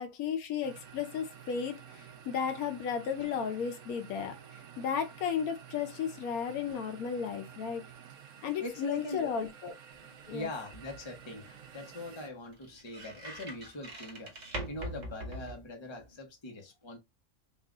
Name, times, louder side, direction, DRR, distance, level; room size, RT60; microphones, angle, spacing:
voice 1, 0.0-4.3 4.8-7.8 8.4-9.8 10.3-10.5, left 7 dB, 75° left, 1.1 m, -34 dB
sound 1, 0.6-12.3, right 8 dB, 65° right, 1.0 m, -51 dB
voice 2, 8.6-9.2 10.3-17.0, left 2 dB, 25° left, 0.8 m, -42 dB
sound 2, 9.9-16.2, right 1 dB, 35° right, 0.9 m, -45 dB
3.7 x 2.4 x 3.5 m
omnidirectional pair, 1.5 m